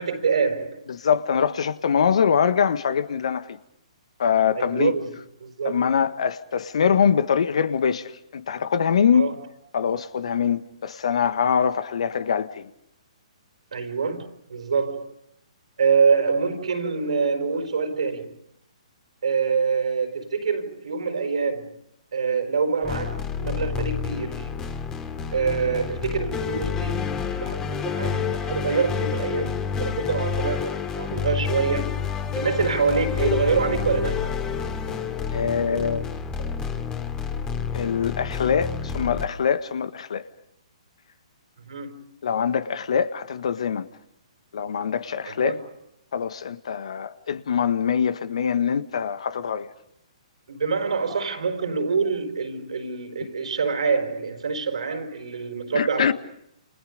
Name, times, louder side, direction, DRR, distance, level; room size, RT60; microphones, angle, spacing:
voice 1, 0.0-0.9 4.5-5.1 5.4-5.8 9.1-9.3 13.7-15.1 15.8-18.4 19.2-21.8 22.1-24.6 25.3-31.9 32.4-34.3 41.6-42.1 45.2-45.6 50.5-56.1, right 5 dB, 70° right, 4.6 m, -25 dB
voice 2, 0.9-3.6 4.2-4.9 5.6-9.3 9.7-12.7 35.3-36.0 37.7-40.2 42.2-43.9 44.5-45.6 46.1-49.7 55.7-56.1, left 7 dB, 65° left, 1.6 m, -23 dB
sound 1, 22.8-39.3, left 6 dB, 20° left, 2.7 m, -29 dB
29.5 x 28.5 x 5.3 m
hypercardioid pair, 130°, 4 cm